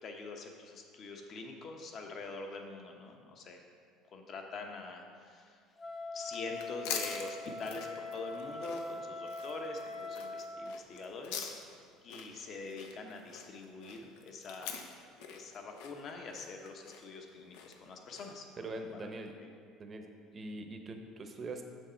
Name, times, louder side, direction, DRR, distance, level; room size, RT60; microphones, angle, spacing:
voice 1, 0.0-3.6 4.1-5.6 6.1-11.5 12.0-14.8 15.2-18.5 18.9-19.0, left 3 dB, 45° left, 3 dB, 1.0 m, -44 dB
Wind instrument woodwind instrument, 5.8-10.8, left 2 dB, 25° left, 0.5 m, -42 dB
sound 1, 6.2-18.5, left 6 dB, 90° left, 0.7 m, -45 dB
voice 2, 18.6-19.3 19.8-20.0 20.3-21.6, right 2 dB, 30° right, 5 dB, 0.8 m, -42 dB
7.3 x 6.5 x 4.4 m, 2.1 s
cardioid pair, 125°, 0 cm